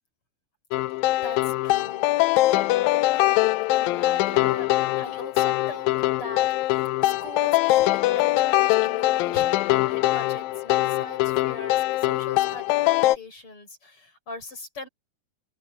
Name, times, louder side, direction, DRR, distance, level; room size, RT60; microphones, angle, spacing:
sound 1, 0.7-13.2, left 17 dB, 85° left, 2.4 m, -22 dB
voice 1, 0.9-2.1 2.5-4.7 5.0-14.9, left 3 dB, 35° left, 7.6 m, -40 dB
open air
omnidirectional pair, 4.1 m